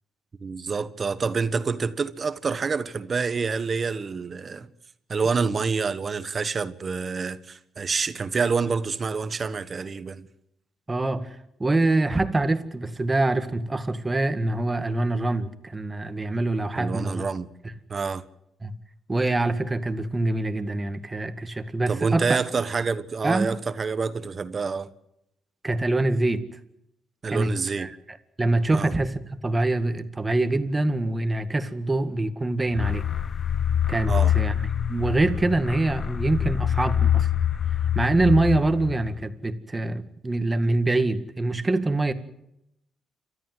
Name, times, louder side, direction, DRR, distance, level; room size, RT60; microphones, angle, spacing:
voice 1, 0.4-4.7 5.1-10.2 16.7-17.5 17.9-18.2 21.9-24.9 27.2-27.9 28.7-28.9 34.1-34.3, right 5 dB, 40° right, 1.3 m, -27 dB
voice 2, 10.9-17.2 18.6-18.7 19.1-22.4 23.2-23.5 25.6-26.4 27.3-33.0 33.9-34.5 34.9-37.3 38.0-42.1, right 2 dB, 20° right, 1.9 m, -25 dB
sound 1, 32.7-39.3, left 9 dB, 45° left, 0.7 m, -25 dB
29.0 x 13.5 x 7.9 m
cardioid pair, 90°, 0 cm